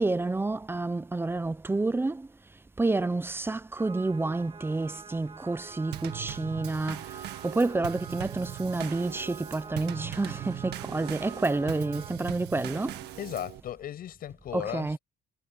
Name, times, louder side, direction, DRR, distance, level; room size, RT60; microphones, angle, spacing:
voice 1, 0.0-2.3 2.8-13.1 14.5-15.0, right 3 dB, 15° right, 0.8 m, -29 dB
sound 1, 3.8-12.1, right 5 dB, 30° right, 6.0 m, -47 dB
Drum kit / Snare drum / Bass drum, 5.9-13.6, right 15 dB, 80° right, 1.8 m, -40 dB
voice 2, 13.2-15.0, left 11 dB, 60° left, 6.9 m, -36 dB
cardioid pair, 110°, 17 cm